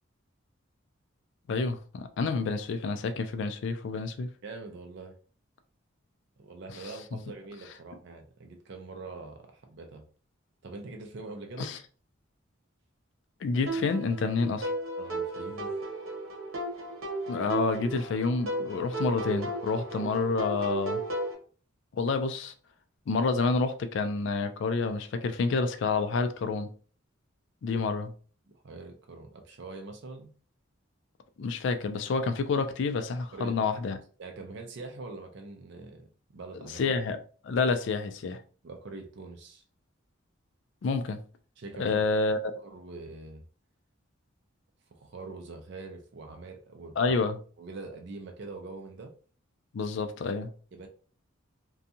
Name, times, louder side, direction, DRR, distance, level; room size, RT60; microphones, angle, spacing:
voice 1, 1.5-4.3 11.6-11.8 13.4-14.7 17.3-21.0 21.9-22.5 23.1-26.7 27.6-28.1 31.4-34.0 36.7-37.2 37.4-38.4 40.8-41.2 41.8-42.4 47.0-47.4 49.7-50.5, left 4 dB, 60° left, 0.3 m, -28 dB
voice 2, 4.4-5.1 6.4-10.0 10.6-11.8 15.0-15.7 28.5-30.3 33.3-33.6 34.2-36.9 38.6-39.6 41.6-42.1 42.6-43.4 44.9-47.2 47.6-49.1 50.7-50.9, right 3 dB, 55° right, 0.4 m, -43 dB
sound 1, 13.7-21.3, right 2 dB, 85° right, 0.9 m, -34 dB
2.6 x 2.3 x 2.6 m
head